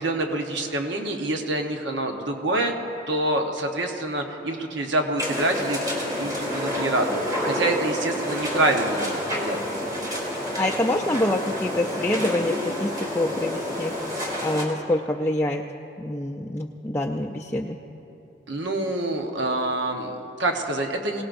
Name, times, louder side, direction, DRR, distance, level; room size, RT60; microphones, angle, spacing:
voice 1, 0.0-2.7 3.1-9.6 18.5-21.2, right 2 dB, 70° right, 3 dB, 1.1 m, -26 dB
sound 1, 5.2-14.6, left 1 dB, 20° right, 2.9 m, -29 dB
voice 2, 10.6-14.0 14.4-15.6 16.0-17.8, left 1 dB, 10° left, 1 dB, 0.4 m, -26 dB
23.5 x 18.0 x 2.6 m, 2.9 s
head